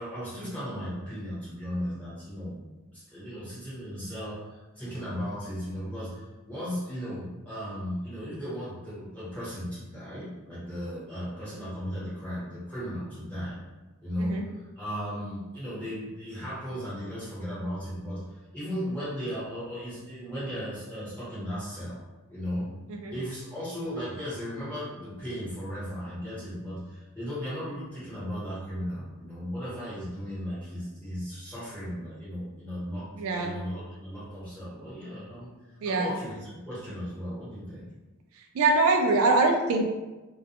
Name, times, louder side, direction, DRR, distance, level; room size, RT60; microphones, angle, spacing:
voice 1, 0.0-2.6 2.9-13.6 14.0-22.0 22.3-22.7 23.1-37.9, equal, 5° left, -11 dB, 1.1 m, -36 dB
voice 2, 33.2-33.5 35.8-36.1 38.5-39.9, right 3 dB, 75° right, 3 dB, 0.3 m, -23 dB
2.2 x 2.2 x 2.8 m, 1.2 s
head